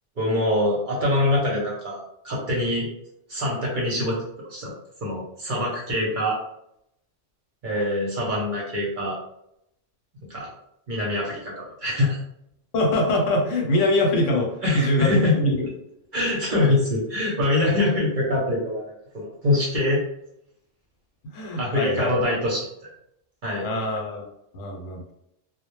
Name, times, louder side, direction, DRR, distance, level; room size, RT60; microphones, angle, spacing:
voice 1, 0.2-2.9 3.3-4.7 5.0-6.4 7.6-9.2 10.3-10.5 10.9-12.2 14.6-15.4 16.1-20.0 21.6-22.7 23.4-23.7, left 1 dB, 50° right, -4 dB, 0.7 m, -24 dB
voice 2, 12.7-15.6 21.3-22.1 23.6-24.2 24.5-25.0, left 1 dB, 85° left, 0 dB, 1.0 m, -23 dB
2.1 x 2.0 x 3.0 m, 0.77 s
omnidirectional pair, 1.3 m